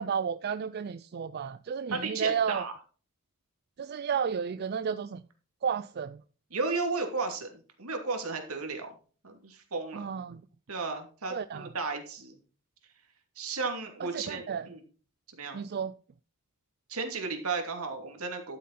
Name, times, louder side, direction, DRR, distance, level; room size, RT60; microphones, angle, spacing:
voice 1, 0.0-2.6 3.8-5.2 5.6-6.2 9.9-10.4 11.3-11.7 14.0-14.7 15.5-15.9, right 7 dB, 50° right, 0.4 m, -32 dB
voice 2, 1.9-2.7 6.5-8.9 9.2-10.1 10.7-12.4 13.4-14.8 15.4-15.6 16.9-18.6, right 4 dB, 75° right, 2.7 m, -34 dB
12.5 x 7.5 x 4.2 m
head